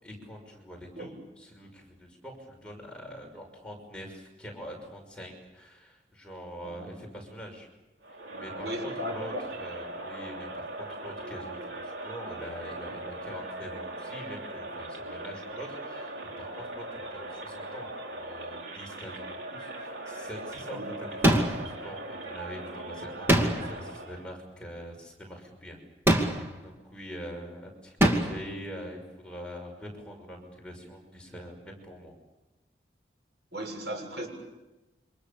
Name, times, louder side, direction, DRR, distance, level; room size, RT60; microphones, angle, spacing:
voice 1, 0.0-7.7 8.3-25.8 26.2-32.1, equal, 5° left, 0 dB, 6.0 m, -44 dB
Crowd, 8.0-24.3, right 2 dB, 85° right, 3.9 m, -40 dB
voice 2, 8.6-9.3 20.7-20.9 33.5-34.3, equal, 65° right, 3 dB, 6.9 m, -36 dB
sound 1, 21.2-21.8 23.3-23.8 26.1-26.6 28.0-28.5, right 1 dB, 15° right, 2.4 m, -24 dB
28.5 x 26.0 x 7.1 m, 1.0 s
head